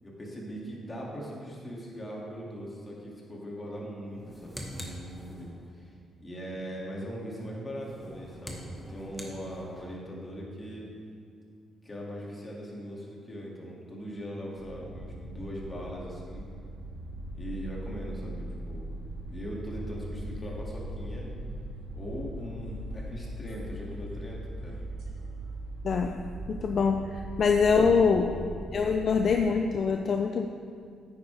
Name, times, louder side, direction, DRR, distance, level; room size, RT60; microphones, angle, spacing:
voice 1, 0.0-5.9 6.2-10.9 11.8-16.5 17.3-18.9 19.3-21.3 21.9-24.8 27.0-27.1 27.7-28.5, equal, 25° left, -3 dB, 2.3 m, -40 dB
sound 1, 4.1-5.7 7.7-10.0, equal, 5° left, 1.4 m, -44 dB
sound 2, 14.6-29.4, right 1 dB, 80° right, 1.7 m, -40 dB
voice 2, 25.8-28.3 28.7-30.5, left 5 dB, 55° left, 5 dB, 0.4 m, -25 dB
9.5 x 8.9 x 3.4 m, 2.2 s
cardioid pair, 90°, 0 cm